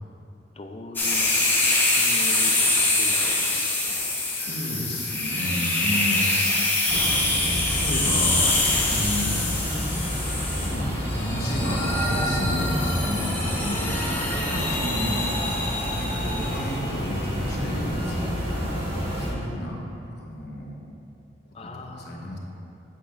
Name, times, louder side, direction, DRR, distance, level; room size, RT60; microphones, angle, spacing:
voice 1, 0.6-1.3 1.9-2.6 2.9-4.0 21.5-22.3, left 1 dB, 30° left, 4 dB, 0.4 m, -40 dB
sound 1, 1.0-16.7, left 2 dB, 10° left, 0.8 m, -25 dB
voice 2, 3.5-6.3 7.6-8.5 8.9-9.3 10.6-15.4 15.9-18.9 19.2-19.8 20.1-20.8 21.6-22.4, left 1 dB, 60° left, -1 dB, 1.1 m, -32 dB
sound 2, 6.9-19.3, equal, 30° right, 1.5 m, -29 dB
8.5 x 8.4 x 2.5 m, 2.8 s
head